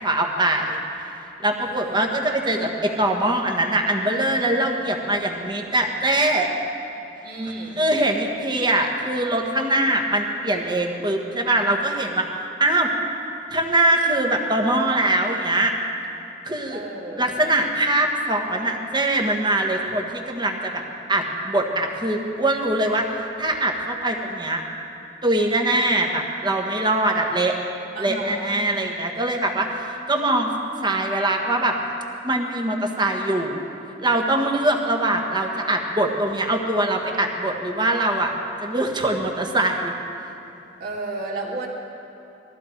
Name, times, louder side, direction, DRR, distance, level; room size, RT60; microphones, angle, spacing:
voice 1, 0.0-0.8 1.4-6.5 7.8-12.3 12.6-12.9 13.5-15.7 16.4-16.8 17.2-20.8 21.1-24.6 25.2-27.6 28.0-30.5 30.8-31.8 32.2-33.6 34.0-38.3 38.6-39.9, right 1 dB, 25° right, 2 dB, 1.6 m, -22 dB
voice 2, 1.6-2.1 7.2-7.8 16.7-17.3 27.9-28.6 40.8-41.7, right 2 dB, 55° right, -3 dB, 2.8 m, -33 dB
20.5 x 15.0 x 4.6 m, 2.9 s
head